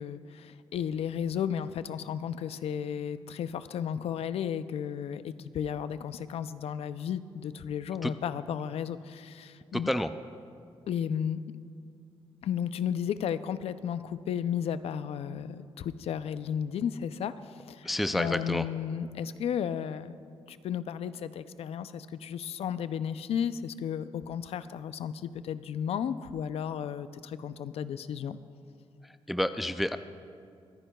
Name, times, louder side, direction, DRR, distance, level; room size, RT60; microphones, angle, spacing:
voice 1, 0.0-9.9 10.9-11.4 12.4-17.3 17.7-20.2 20.5-28.4, left 8 dB, 70° left, 14 dB, 0.4 m, -34 dB
voice 2, 9.7-10.1 17.8-18.7 29.3-30.0, left 1 dB, ahead, 10 dB, 0.3 m, -29 dB
25.0 x 9.9 x 2.3 m, 2.3 s
cardioid pair, 100°, 11 cm